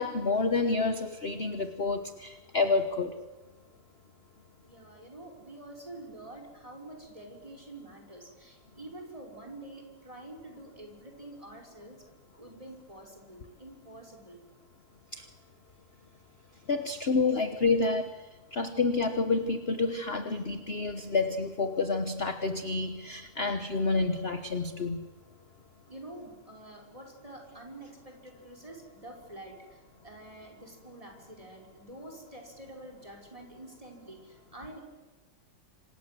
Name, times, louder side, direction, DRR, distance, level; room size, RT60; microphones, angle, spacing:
voice 1, 0.0-3.1 15.1-15.2 16.7-18.2 18.5-25.1, left 3 dB, 35° left, 8 dB, 1.3 m, -29 dB
voice 2, 4.6-12.0 12.4-14.4 16.2-16.7 25.9-34.8, right 1 dB, 15° right, 2 dB, 5.6 m, -47 dB
27.0 x 26.5 x 7.8 m, 1.2 s
omnidirectional pair, 2.1 m